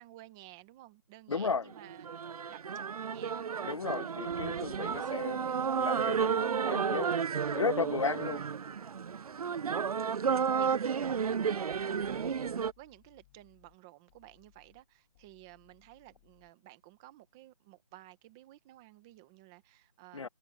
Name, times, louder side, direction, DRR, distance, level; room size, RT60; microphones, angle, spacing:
voice 1, 0.0-3.6 4.0-4.1 4.5-4.7 5.0-5.3 9.4-9.8 10.2-20.3, right 16 dB, 5° right, 0.7 m, -54 dB
voice 2, 1.3-1.6 3.6-7.1 7.5-8.4 20.1-20.3, left 5 dB, 60° left, 0.6 m, -34 dB
sound 1, 1.7-12.7, right 6 dB, 85° right, 0.4 m, -32 dB
sound 2, 11.0-13.8 14.1-16.5, left 17 dB, 15° left, 1.7 m, -67 dB
hypercardioid pair, 170°, 18 cm